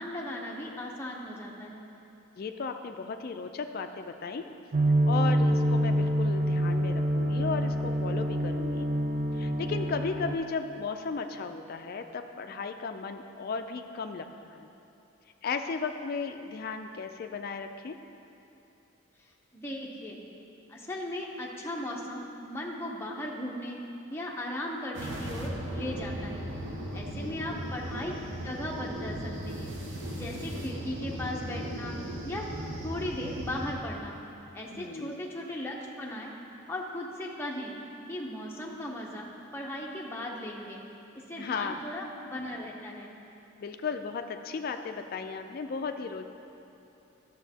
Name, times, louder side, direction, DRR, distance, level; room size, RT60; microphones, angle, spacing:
voice 1, 0.0-1.8 19.2-20.2 20.7-23.8 24.1-26.5 26.9-28.1 28.4-29.7 30.1-31.9 32.2-32.5 32.8-34.2 34.5-36.3 36.7-37.8 38.1-39.3 39.5-40.8 41.1-43.1, left 1 dB, 10° left, -2 dB, 0.6 m, -37 dB
voice 2, 2.4-4.5 5.1-8.9 9.3-14.3 14.5-14.7 15.4-18.0 27.2-27.6 34.7-35.2 41.4-41.8 43.6-46.3, left 5 dB, 45° left, 6 dB, 0.3 m, -35 dB
sound 1, 4.7-10.3, equal, 35° right, 0.4 m, -26 dB
sound 2, 24.9-33.7, equal, 60° right, 0.9 m, -37 dB
11.0 x 6.8 x 2.8 m, 2.8 s
head